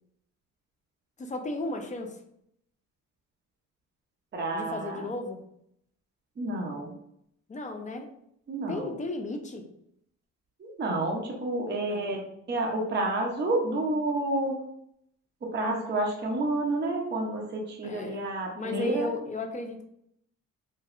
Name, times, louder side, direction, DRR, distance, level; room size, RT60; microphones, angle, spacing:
voice 1, 1.2-2.2 4.5-5.4 7.5-8.1 8.7-9.7 11.8-12.3 12.9-13.0 17.8-19.8, left 2 dB, 25° left, 5 dB, 0.5 m, -35 dB
voice 2, 4.3-5.1 6.4-6.9 8.5-8.9 10.6-14.6 15.4-19.1, right 2 dB, 35° right, 0 dB, 0.7 m, -30 dB
3.1 x 2.6 x 2.5 m, 0.73 s
cardioid pair, 90°, 30 cm